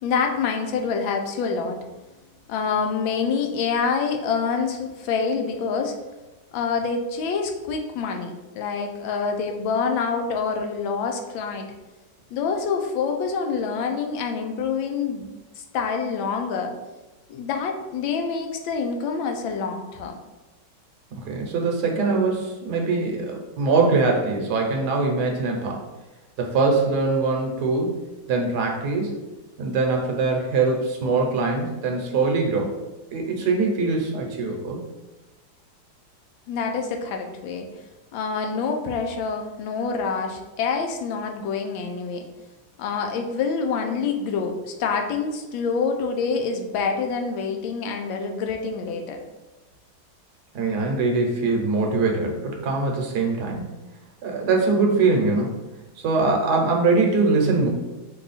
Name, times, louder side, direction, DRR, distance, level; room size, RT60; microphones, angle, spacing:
voice 1, 0.0-1.8 2.5-5.9 6.5-11.7 12.3-16.7 17.3-20.1 36.5-37.7 38.1-42.2 42.8-49.2, left 5 dB, 75° left, 4 dB, 1.3 m, -26 dB
voice 2, 21.1-25.8 26.4-28.0 28.3-29.2 29.6-32.7 33.1-34.8 50.5-53.8 54.2-55.6 56.0-57.7, right 3 dB, 60° right, 1 dB, 1.2 m, -22 dB
5.5 x 2.3 x 4.0 m, 1.1 s
omnidirectional pair, 2.2 m